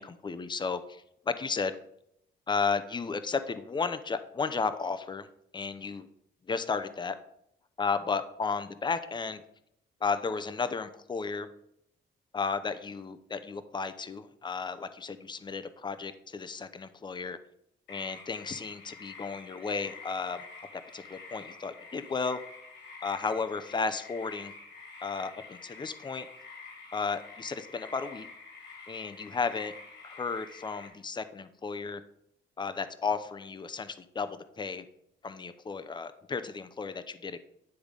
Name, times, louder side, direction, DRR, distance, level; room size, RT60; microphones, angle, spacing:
voice 1, 0.0-1.7 2.5-5.3 5.5-6.1 6.5-7.2 7.8-9.4 10.0-11.5 12.3-17.4 17.9-20.5 20.9-22.4 23.0-24.5 25.0-26.3 26.9-28.3 28.9-29.7 30.0-32.0 32.6-34.8 35.2-37.4, left 5 dB, 20° left, 12 dB, 0.6 m, -33 dB
sound 1, 17.9-30.9, left 4 dB, 70° left, 2.8 m, -48 dB
10.0 x 3.4 x 5.1 m, 0.76 s
cardioid pair, 90°, 20 cm